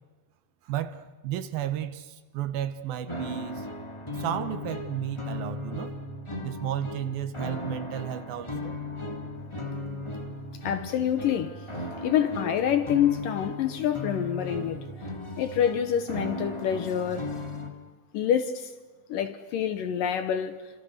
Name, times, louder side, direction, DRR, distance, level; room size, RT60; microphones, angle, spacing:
voice 1, 0.6-3.7 4.1-6.0 6.4-8.7, right 11 dB, 70° right, 2.7 m, -33 dB
sound 1, 3.1-17.7, left 1 dB, 10° left, 2.0 m, -36 dB
voice 2, 10.6-11.5 12.0-14.8 15.4-17.2 18.1-18.7 19.1-20.6, left 9 dB, 70° left, 2.3 m, -26 dB
28.5 x 27.0 x 6.6 m
omnidirectional pair, 4.6 m